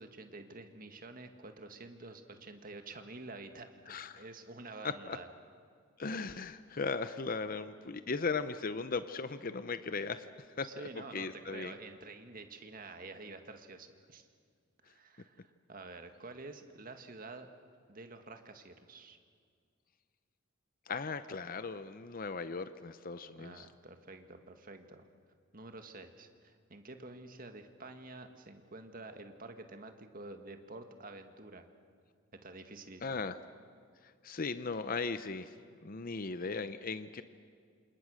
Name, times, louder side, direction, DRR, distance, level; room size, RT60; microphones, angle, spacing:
voice 1, 0.0-5.3 10.6-14.3 14.8-17.5 17.9-19.2 23.4-25.1 25.5-31.7 32.4-33.2, right 3 dB, 45° right, 7 dB, 1.9 m, -49 dB
voice 2, 3.9-4.2 4.8-5.2 6.0-11.7 20.9-23.7 33.0-33.4 34.0-35.5 35.8-37.2, left 4 dB, 45° left, 11 dB, 0.7 m, -37 dB
28.0 x 27.5 x 6.5 m, 2.1 s
head